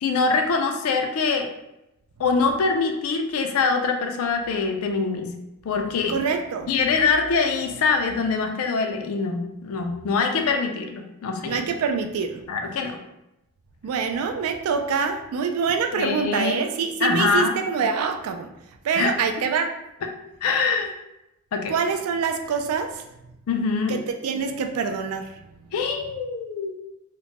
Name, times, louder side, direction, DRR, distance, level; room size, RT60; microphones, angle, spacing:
voice 1, 0.0-1.5 2.2-5.3 5.6-6.2 6.7-11.6 12.5-13.0 15.9-16.6 17.0-17.5 19.0-19.2 20.0-20.1 20.4-20.9 21.5-21.7 23.5-24.0 25.7-26.7, left 4 dB, 80° left, 4 dB, 0.4 m, -24 dB
voice 2, 6.1-6.7 11.5-12.4 13.8-18.5 18.8-19.7 21.7-23.0 23.9-25.3, right 5 dB, 80° right, 5 dB, 0.3 m, -25 dB
2.9 x 2.1 x 2.8 m, 0.89 s
head